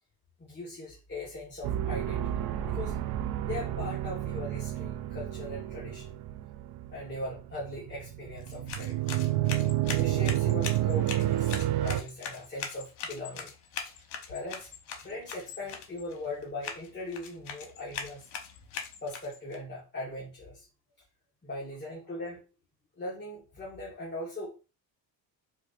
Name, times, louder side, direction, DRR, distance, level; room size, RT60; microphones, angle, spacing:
voice 1, 0.4-2.3 2.6-2.9 3.4-6.1 6.9-9.0 9.9-13.5 13.8-13.9 14.3-14.7 15.0-18.3 19.0-20.7 21.4-22.4 23.0-24.7, left 2 dB, 25° left, -7 dB, 1.4 m, -40 dB
sound 1, 1.6-12.0, right 14 dB, 55° right, 0.5 m, -30 dB
sound 2, 8.4-19.6, left 7 dB, 75° left, 1.0 m, -41 dB
4.5 x 2.5 x 2.4 m, 0.31 s
supercardioid pair, 80°, 47 cm